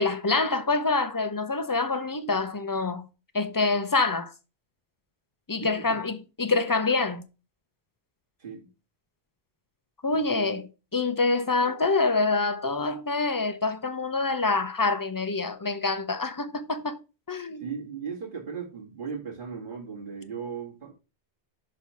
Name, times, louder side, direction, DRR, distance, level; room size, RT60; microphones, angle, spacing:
voice 1, 0.0-3.0 3.3-4.3 5.5-7.2 10.0-10.6 10.9-17.0 17.3-17.7, left 3 dB, 20° left, 0.7 m, -26 dB
voice 2, 5.6-6.0 8.4-8.7 10.1-10.5 17.6-20.9, right 6 dB, 50° right, 2.4 m, -37 dB
6.3 x 4.4 x 5.7 m
omnidirectional pair, 1.2 m